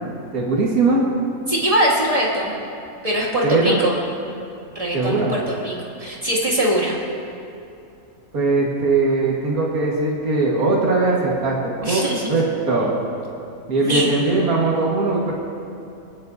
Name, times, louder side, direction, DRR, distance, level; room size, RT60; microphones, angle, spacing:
voice 1, 0.3-1.0 3.4-3.8 4.9-5.4 8.3-13.0 13.7-15.3, right 3 dB, 85° right, -4 dB, 2.1 m, -20 dB
voice 2, 1.5-2.6 3.0-3.9 4.7-5.7 6.0-7.0 11.8-12.3 13.8-14.1, equal, 25° right, -5 dB, 2.3 m, -21 dB
27.0 x 9.5 x 2.7 m, 2.7 s
omnidirectional pair, 1.5 m